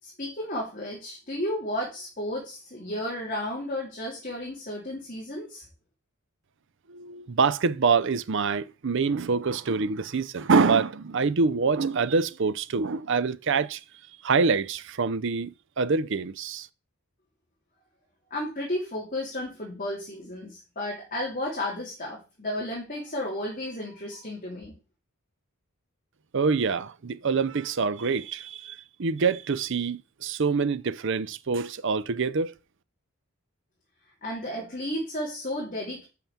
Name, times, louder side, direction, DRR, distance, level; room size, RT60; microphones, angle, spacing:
voice 1, 0.0-5.7 18.3-24.7 34.2-36.1, left 1 dB, 40° left, 2.8 m, -33 dB
voice 2, 6.9-13.8 14.2-16.7 26.3-32.5, right 4 dB, 55° right, 0.6 m, -25 dB
6.0 x 5.7 x 7.1 m
head